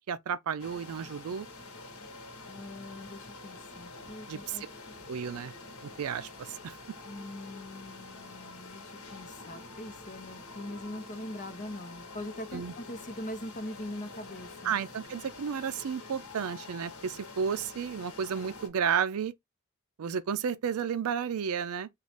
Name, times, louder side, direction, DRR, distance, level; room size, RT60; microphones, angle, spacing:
voice 1, 0.1-1.5 4.3-4.7 5.1-5.5 5.8-6.8 12.5-12.7 14.6-19.3 20.0-21.9, right 7 dB, 90° right, 0.4 m, -32 dB
sound 1, 0.6-18.7, left 3 dB, 85° left, 1.1 m, -47 dB
voice 2, 2.5-4.6 7.0-14.8, left 1 dB, 35° left, 0.8 m, -42 dB
3.8 x 2.4 x 3.4 m
head